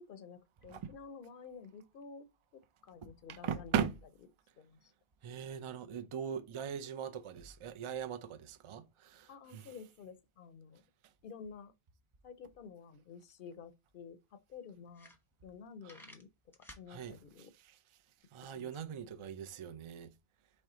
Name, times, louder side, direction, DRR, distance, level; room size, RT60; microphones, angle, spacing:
voice 1, 0.0-2.3 2.5-3.9 4.6-4.9 9.3-10.8 11.2-11.7 12.2-15.1 15.4-16.3 16.8-17.5 18.5-18.7, left 6 dB, 60° left, 0.7 m, -51 dB
voice 2, 3.4-3.9 5.2-9.7 16.9-17.2 18.3-20.1, right 8 dB, 45° right, 0.4 m, -39 dB
sound 1, 13.5-13.6 13.9-14.0 14.5-14.6 14.9-15.6 15.8-16.9, left 1 dB, ahead, 0.8 m, -54 dB
4.5 x 3.2 x 3.7 m
omnidirectional pair, 1.1 m